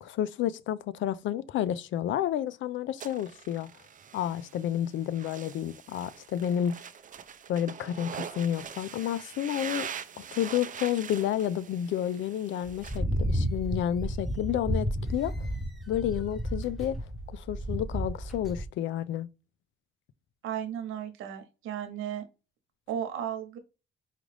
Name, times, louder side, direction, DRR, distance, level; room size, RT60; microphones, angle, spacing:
voice 1, 0.0-3.7 4.1-6.8 7.5-9.9 10.2-15.5 15.9-17.0 17.3-19.3, left 10 dB, 70° left, 0.4 m, -30 dB
sound 1, 3.0-13.0, right 8 dB, 40° right, 0.5 m, -43 dB
sound 2, 12.7-18.7, equal, ahead, 1.1 m, -32 dB
voice 2, 20.4-22.2 22.9-23.6, right 9 dB, 90° right, 1.0 m, -35 dB
5.0 x 2.4 x 3.2 m
cardioid pair, 90°, 20 cm